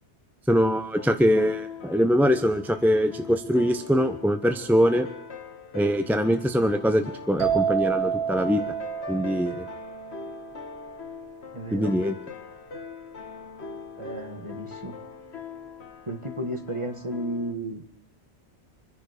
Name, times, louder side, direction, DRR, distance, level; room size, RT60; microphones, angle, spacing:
voice 1, 0.5-5.1 5.7-8.6 9.1-9.7 11.7-12.1, equal, ahead, 7 dB, 0.8 m, -23 dB
sound 1, 1.0-17.5, left 5 dB, 65° left, 1.9 m, -41 dB
sound 2, 7.4-11.0, right 8 dB, 55° right, 4.6 m, -29 dB
voice 2, 11.5-11.9 14.0-14.9 16.1-17.8, right 1 dB, 25° right, 7 dB, 1.6 m, -33 dB
26.5 x 10.5 x 5.0 m, 0.70 s
omnidirectional pair, 1.2 m